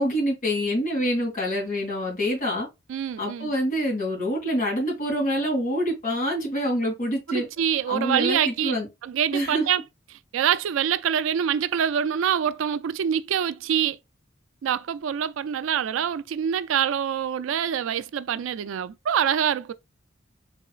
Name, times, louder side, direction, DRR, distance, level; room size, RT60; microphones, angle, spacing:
voice 1, 0.0-2.7 3.2-7.5 7.9-8.9 9.3-9.7, equal, 45° left, 2.8 m, -26 dB
voice 2, 2.9-3.5 7.3-8.8 9.0-9.8 10.3-14.0 14.6-19.7, right 8 dB, 80° right, 0.3 m, -25 dB
4.3 x 3.7 x 2.4 m
head